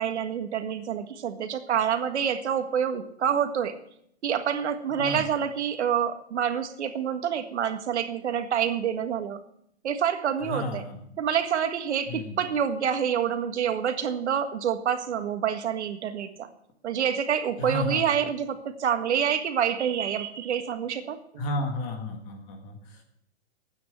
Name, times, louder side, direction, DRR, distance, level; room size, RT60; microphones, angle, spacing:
voice 1, 0.0-3.7 4.2-9.4 9.8-10.8 11.2-16.5 16.8-21.4, right 8 dB, 90° right, 8 dB, 1.8 m, -27 dB
voice 2, 10.4-11.0 12.1-12.4 17.6-18.0 21.4-23.0, left 1 dB, 20° left, 3 dB, 1.8 m, -32 dB
12.0 x 9.5 x 8.0 m, 0.72 s
hypercardioid pair, 180°, 33 cm